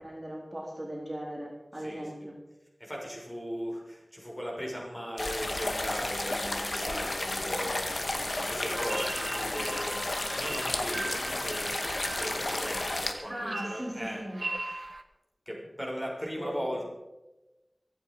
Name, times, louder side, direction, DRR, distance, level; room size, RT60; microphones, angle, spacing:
voice 1, 0.0-2.4 13.3-14.4 16.4-16.8, equal, 25° right, -3 dB, 4.2 m, -38 dB
voice 2, 1.8-2.2 2.8-14.2 15.5-16.8, equal, 15° left, -2 dB, 6.1 m, -38 dB
sound 1, 5.2-13.1, left 2 dB, 60° left, 2.0 m, -32 dB
sound 2, 8.7-15.0, right 2 dB, 70° right, 1.2 m, -40 dB
23.5 x 9.6 x 4.9 m, 1.0 s
wide cardioid pair, 55°, 0 cm